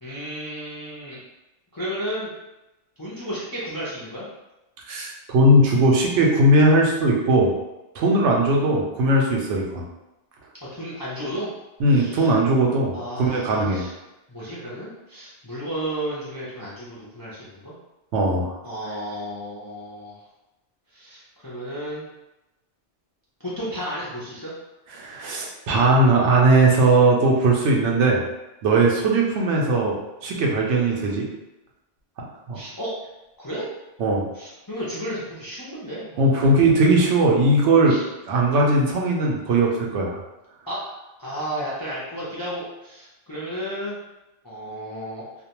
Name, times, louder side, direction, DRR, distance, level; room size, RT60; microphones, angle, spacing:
voice 1, 0.0-1.2 1.7-2.3 3.0-4.3 10.7-11.5 11.9-12.3 12.9-13.9 14.3-17.8 18.6-20.2 20.9-22.1 23.4-24.5 32.5-32.9 33.4-33.7 34.3-36.7 37.9-38.0 40.7-40.8 41.2-44.0 44.4-45.2, equal, 35° left, -8 dB, 0.3 m, -33 dB
voice 2, 4.9-7.5 7.9-9.8 11.8-13.8 18.1-18.5 25.0-28.2 28.6-30.0 30.2-31.2 32.5-32.6 34.0-34.2 36.2-37.9 38.3-40.2, right 2 dB, 80° right, -1 dB, 0.9 m, -19 dB
2.5 x 2.1 x 2.8 m, 0.98 s
omnidirectional pair, 1.2 m